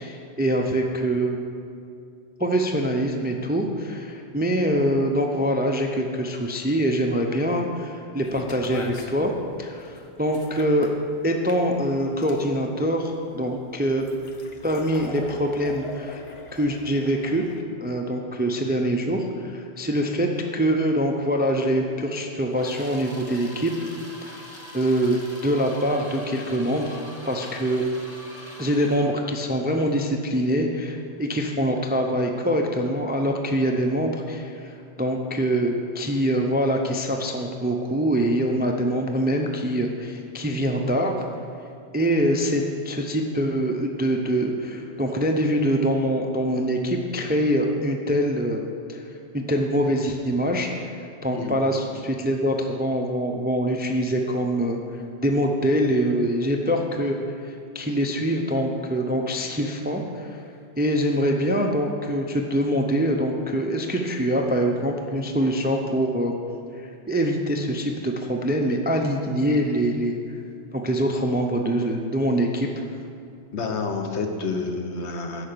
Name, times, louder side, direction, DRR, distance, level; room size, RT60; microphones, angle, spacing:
voice 1, 0.0-1.4 2.4-9.3 9.6-10.9 11.2-14.1 14.6-16.2 16.5-17.4 17.8-23.7 24.3-27.0 27.3-27.8 28.6-41.1 41.9-49.0 49.3-50.9 51.2-54.8 55.2-60.4 60.8-66.4 66.7-70.2 70.7-72.8, equal, 15° right, 3 dB, 0.4 m, -24 dB
sound 1, 8.2-17.6, left 2 dB, 35° left, 0.6 m, -41 dB
sound 2, 22.5-29.2, left 1 dB, 15° left, 0.9 m, -43 dB
voice 2, 73.5-75.5, left 4 dB, 75° left, 3 dB, 1.2 m, -29 dB
9.9 x 5.8 x 6.7 m, 2.4 s
omnidirectional pair, 1.2 m